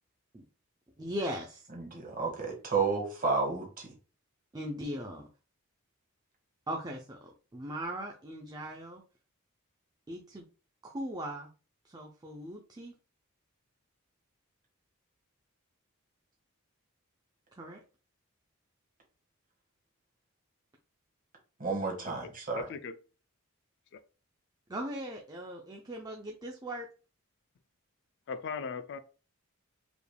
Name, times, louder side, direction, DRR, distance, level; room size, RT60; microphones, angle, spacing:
voice 1, 1.0-1.7 4.5-5.3 6.7-7.2 7.5-9.0 10.1-10.4 10.8-11.5 11.8-12.9 17.5-17.8 24.7-26.9, equal, 20° right, 0.5 m, -39 dB
voice 2, 1.7-3.9 21.6-22.7, right 4 dB, 40° right, 1.4 m, -31 dB
voice 3, 22.5-22.9 23.9-24.0 28.3-29.0, left 5 dB, 55° left, 0.4 m, -38 dB
5.0 x 3.3 x 2.2 m
head